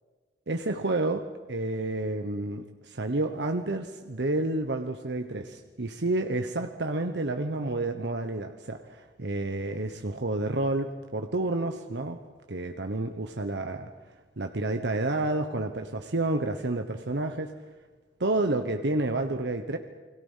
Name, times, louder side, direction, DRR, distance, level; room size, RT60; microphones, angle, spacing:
voice 1, 0.5-12.2 12.5-13.9 14.4-17.5 18.2-19.8, right 2 dB, 75° right, 6 dB, 1.1 m, -30 dB
29.5 x 21.0 x 5.7 m, 1.4 s
head